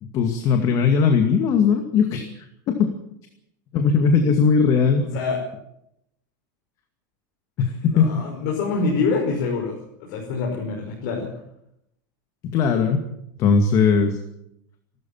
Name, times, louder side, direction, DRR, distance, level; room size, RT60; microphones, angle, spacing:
voice 1, 0.0-2.9 3.7-5.0 7.6-8.2 12.4-13.0 13.4-14.2, left 5 dB, 35° left, 6 dB, 2.2 m, -19 dB
voice 2, 5.0-5.4 7.9-11.3, left 4 dB, 60° left, 0 dB, 5.4 m, -26 dB
29.0 x 13.0 x 7.3 m, 0.79 s
supercardioid pair, 160°, 10 cm